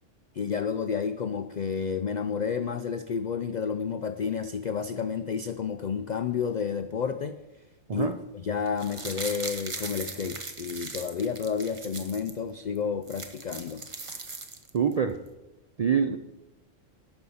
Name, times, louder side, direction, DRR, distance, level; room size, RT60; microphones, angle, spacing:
voice 1, 0.3-7.4 7.9-8.1 8.4-13.8, left 6 dB, 70° left, 10 dB, 0.4 m, -30 dB
sound 1, 8.6-12.3 12.7-12.8 13.0-14.9 15.3-15.4, right 3 dB, 30° right, 0.8 m, -39 dB
voice 2, 14.7-15.2 15.8-16.2, right 7 dB, 65° right, 7 dB, 0.4 m, -25 dB
11.5 x 5.4 x 7.1 m, 1.0 s
omnidirectional pair, 1.3 m